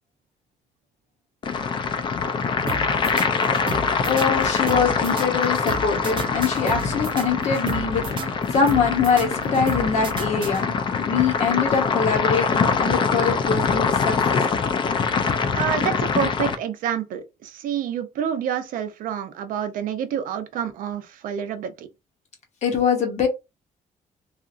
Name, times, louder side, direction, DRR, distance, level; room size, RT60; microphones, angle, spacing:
sound 1, 1.4-16.5, left 5 dB, 35° left, 0.4 m, -24 dB
sound 2, 2.7-11.0, right 4 dB, 35° right, 0.3 m, -34 dB
voice 1, 4.0-10.7 11.0-14.4 22.6-23.3, left 6 dB, 60° left, 0.7 m, -23 dB
voice 2, 15.5-21.9, right 8 dB, 90° right, 0.5 m, -28 dB
2.8 x 2.4 x 2.4 m
cardioid pair, 155°, 14 cm